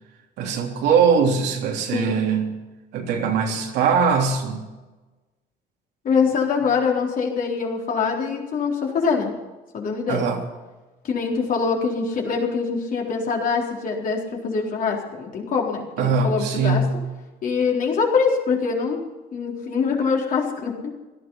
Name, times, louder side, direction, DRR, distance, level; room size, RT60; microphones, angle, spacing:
voice 1, 0.4-2.6 2.9-4.6 10.1-10.4 16.0-16.9, right 5 dB, 85° right, 1 dB, 3.3 m, -21 dB
voice 2, 6.0-9.3 9.7-10.2 11.0-16.8 17.4-19.0 19.3-20.9, left 5 dB, 55° left, -1 dB, 4.1 m, -24 dB
17.0 x 13.0 x 5.7 m, 1.2 s
cardioid pair, 110°, 17 cm